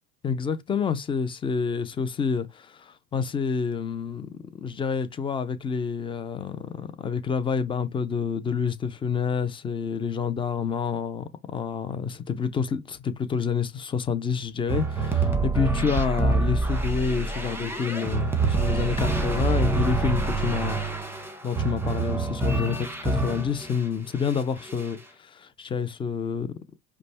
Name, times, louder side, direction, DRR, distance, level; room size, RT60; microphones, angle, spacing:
voice 1, 0.2-20.8 21.4-26.5, left 6 dB, 10° left, 0.3 m, -28 dB
sound 1, 14.7-23.8 24.2-25.0, right 3 dB, 5° right, 1.1 m, -26 dB
5.1 x 2.2 x 4.1 m
hypercardioid pair, 85°, 49 cm